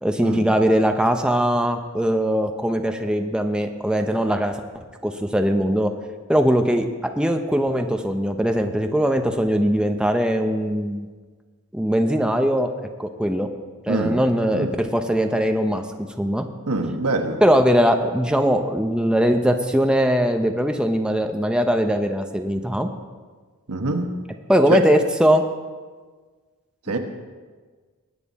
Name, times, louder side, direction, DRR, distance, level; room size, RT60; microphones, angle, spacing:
voice 1, 0.0-4.6 5.0-5.9 6.3-6.9 7.2-11.1 11.7-12.7 13.0-13.5 13.9-15.8 16.2-16.4 17.4-22.9 24.5-25.4, equal, 5° right, 5 dB, 0.7 m, -20 dB
voice 2, 13.9-14.2 14.5-14.7 16.7-17.4 23.7-24.1 24.7-24.8 26.9-27.0, right 3 dB, 80° right, 4 dB, 1.4 m, -24 dB
21.0 x 9.2 x 4.2 m, 1.5 s
head